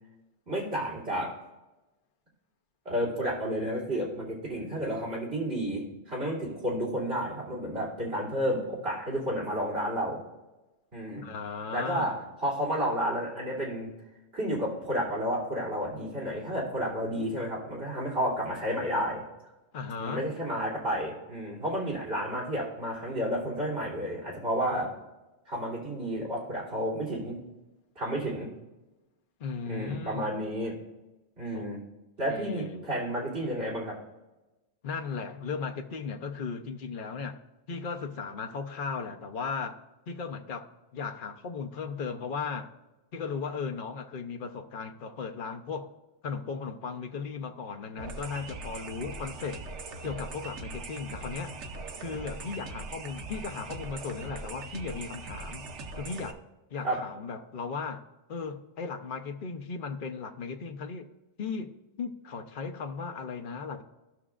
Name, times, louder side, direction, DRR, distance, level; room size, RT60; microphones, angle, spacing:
voice 1, 0.5-1.3 2.8-10.2 10.9-11.2 11.7-12.1 12.4-13.9 14.3-19.2 20.0-24.9 25.5-27.4 27.9-28.5 29.7-30.8 31.4-31.8 32.2-34.0 56.8-57.0, equal, 60° right, 3.4 m, -31 dB
voice 2, 11.2-12.2 19.7-20.3 29.4-30.4 31.5-31.7 32.3-32.9 34.8-37.4 37.7-39.8 40.1-42.7 43.1-45.9 46.2-49.6 50.0-51.5 52.0-55.7 56.0-56.4 56.7-58.0 58.3-61.1 61.4-63.8, left 5 dB, 50° left, 0.9 m, -36 dB
sound 1, 48.0-56.3, right 3 dB, 85° right, 1.1 m, -41 dB
16.5 x 6.1 x 2.5 m
omnidirectional pair, 1.2 m